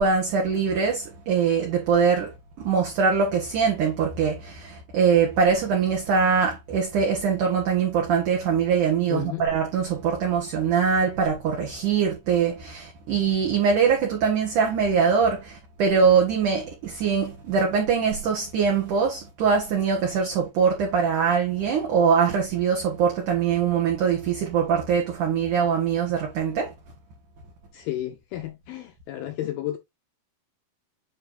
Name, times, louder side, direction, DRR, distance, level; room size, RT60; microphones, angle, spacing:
voice 1, 0.0-26.7, right 6 dB, 60° right, 2.4 m, -23 dB
voice 2, 9.1-9.5 27.7-29.8, left 14 dB, 80° left, 2.2 m, -32 dB
9.6 x 3.2 x 4.0 m
omnidirectional pair, 5.0 m